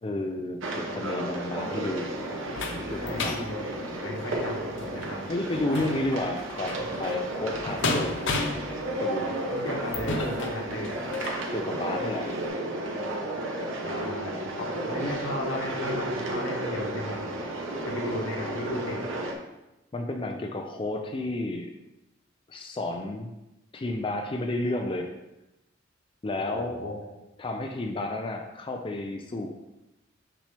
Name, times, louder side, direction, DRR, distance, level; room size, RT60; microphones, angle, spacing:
voice 1, 0.0-2.2 2.6-3.5 5.3-8.2 8.9-9.4 11.5-12.4 19.9-21.7 22.5-23.3 23.7-25.1 26.2-26.8 27.4-29.5, left 2 dB, 25° left, 3 dB, 0.4 m, -31 dB
sound 1, 0.6-19.3, right 1 dB, 75° right, 1.0 m, -33 dB
sound 2, 1.6-11.4 12.0-12.1 12.5-12.6, left 2 dB, 65° left, 0.8 m, -35 dB
voice 2, 3.0-3.7 4.0-5.2 9.5-10.9 13.8-17.5 17.8-19.0 26.4-26.9, left 1 dB, 85° left, -1 dB, 1.5 m, -35 dB
5.9 x 5.7 x 3.4 m, 0.97 s
head